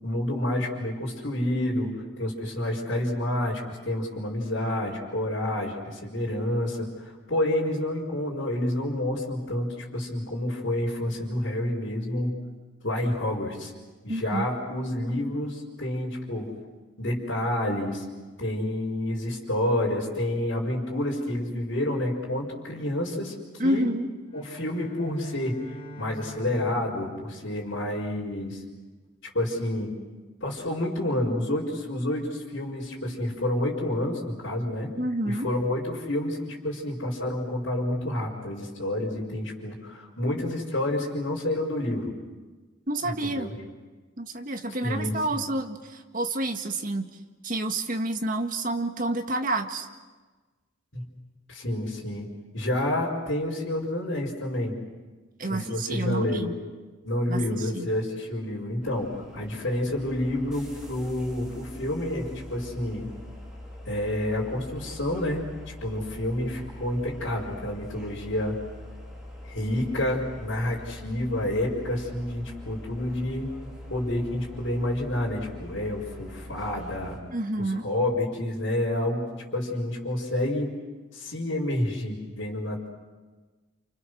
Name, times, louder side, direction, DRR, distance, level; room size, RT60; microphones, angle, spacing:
voice 1, 0.0-12.3 12.8-13.7 14.0-16.5 17.0-18.0 18.4-23.3 23.6-23.9 24.3-25.6 26.0-28.6 29.3-29.9 30.4-34.9 35.2-42.1 43.0-43.5 44.8-45.5 50.9-51.0 51.5-52.3 52.5-54.8 55.4-56.6 57.0-63.1 63.8-65.4 65.8-68.5 69.4-73.5 73.9-77.2 77.6-80.7 81.1-82.9, left 1 dB, 65° left, -5 dB, 5.1 m, -29 dB
voice 2, 14.1-14.5 23.6-24.1 35.0-35.5 42.9-43.5 44.2-47.1 47.4-49.9 55.4-56.6 57.3-57.9 77.3-77.9, right 1 dB, 45° right, 5 dB, 1.8 m, -29 dB
Bowed string instrument, 24.3-28.5, equal, 30° left, 3.9 m, -46 dB
sound 1, 58.8-77.2, left 1 dB, 5° right, 4.5 m, -43 dB
29.0 x 29.0 x 6.5 m, 1.3 s
head